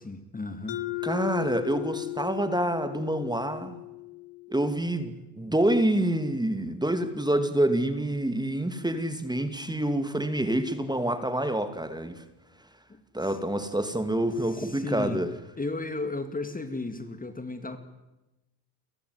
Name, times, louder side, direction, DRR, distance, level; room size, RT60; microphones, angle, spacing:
voice 1, 0.0-1.1 12.9-13.4 14.4-15.2 15.6-17.8, left 2 dB, 15° left, 9 dB, 2.3 m, -35 dB
Mallet percussion, 0.7-5.2, left 20 dB, 60° left, 1.7 m, -36 dB
voice 2, 1.0-3.7 4.5-12.2 13.1-15.3, right 1 dB, 10° right, 9 dB, 2.5 m, -27 dB
30.0 x 14.0 x 9.6 m, 1.0 s
supercardioid pair, 80°, 49 cm